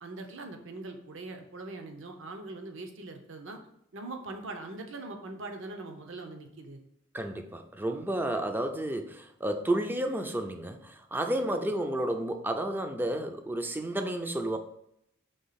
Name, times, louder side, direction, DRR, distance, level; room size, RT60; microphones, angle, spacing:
voice 1, 0.0-3.6 3.9-6.8 11.4-11.6, right 2 dB, 60° right, 5 dB, 0.8 m, -42 dB
voice 2, 7.1-14.6, right 1 dB, 10° right, 6 dB, 0.4 m, -31 dB
5.4 x 3.3 x 5.6 m, 0.75 s
head